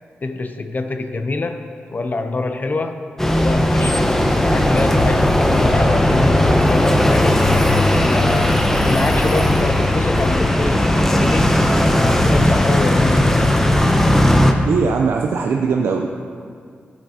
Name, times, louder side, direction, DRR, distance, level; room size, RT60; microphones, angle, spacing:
voice 1, 0.2-3.0 3.4-4.1 4.4-11.5 12.2-13.6, left 3 dB, 45° left, 7 dB, 0.6 m, -25 dB
sound 1, 3.2-14.5, left 1 dB, 10° left, 0.9 m, -16 dB
voice 2, 14.6-16.1, right 5 dB, 80° right, 2 dB, 0.5 m, -19 dB
12.5 x 8.1 x 2.8 m, 2.1 s
cardioid pair, 50°, 4 cm